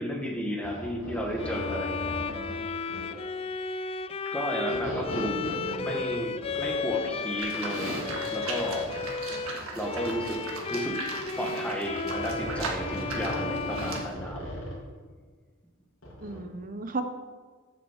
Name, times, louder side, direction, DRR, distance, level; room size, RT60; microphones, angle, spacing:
voice 1, 0.0-2.1 4.3-8.0 8.3-9.0 9.7-10.4 10.7-11.1 11.4-14.4, equal, 5° left, 1 dB, 1.4 m, -33 dB
sound 1, 0.6-3.3 4.6-10.8 11.8-14.8 16.0-16.4, equal, 70° left, 2.9 m, -38 dB
Bowed string instrument, 1.4-14.8, left 5 dB, 25° left, 0.3 m, -34 dB
voice 2, 5.2-6.0 16.2-17.0, right 3 dB, 40° right, 7 dB, 0.8 m, -36 dB
Livestock farm animals working animals, 7.4-14.1, right 3 dB, 75° right, 1.7 m, -38 dB
7.6 x 7.3 x 7.3 m, 1.5 s
head